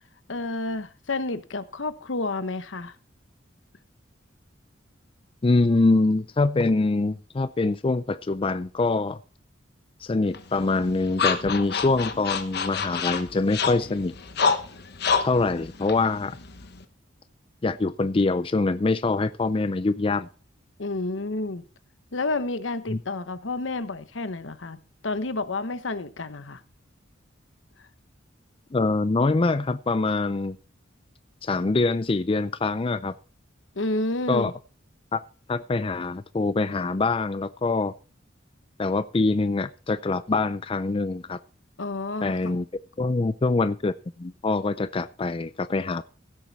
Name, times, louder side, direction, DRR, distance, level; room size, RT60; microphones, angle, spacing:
voice 1, 0.3-3.0 20.8-21.6 22.1-24.8 25.0-26.6 27.8-27.9 33.7-34.5 41.8-42.5, left 2 dB, 80° left, 1.1 m, -30 dB
voice 2, 5.4-9.2 10.0-14.1 15.2-16.4 17.6-20.3 22.9-23.0 28.7-30.6 31.4-33.1 34.3-34.5 35.1-35.2 35.5-37.9 38.8-41.4 42.2-42.7 43.0-46.0, left 3 dB, 30° left, 0.4 m, -24 dB
sound 1, 10.3-16.8, left 5 dB, 60° left, 1.2 m, -28 dB
16.0 x 7.7 x 4.1 m
head